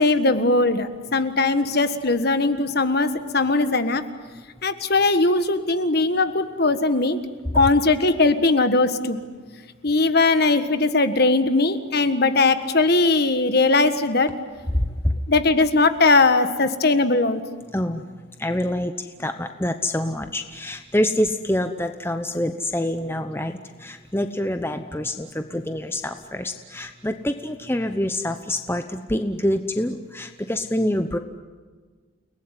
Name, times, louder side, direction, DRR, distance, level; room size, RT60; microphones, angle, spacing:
voice 1, 0.0-4.0 4.6-7.2 7.5-9.2 9.8-14.3 15.3-17.7, left 3 dB, 50° left, 10 dB, 1.5 m, -20 dB
voice 2, 18.4-18.9 19.2-31.2, left 1 dB, 10° left, 7 dB, 0.9 m, -26 dB
30.0 x 19.5 x 9.9 m, 1.5 s
head